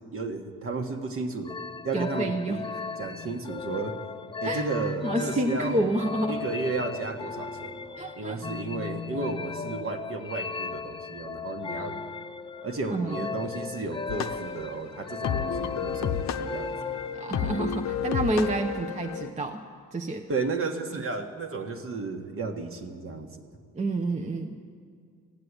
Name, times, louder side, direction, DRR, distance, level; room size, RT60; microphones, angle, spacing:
voice 1, 0.1-1.6 1.8-2.6 3.0-4.0 4.4-5.9 6.3-12.0 12.6-17.0 20.3-23.3, right 3 dB, 45° right, 5 dB, 1.5 m, -33 dB
sound 1, 1.4-17.9, left 5 dB, 20° left, 0.3 m, -37 dB
voice 2, 1.9-2.6 4.4-4.7 5.0-6.4 8.0-8.4 12.9-13.3 17.1-19.6 19.9-20.2 20.9-21.0 23.7-24.6, right 1 dB, 25° right, 4 dB, 0.7 m, -29 dB
sound 2, 14.1-19.3, left 8 dB, 60° left, 0.7 m, -31 dB
15.5 x 7.5 x 9.7 m, 2.2 s
cardioid pair, 90°, 30 cm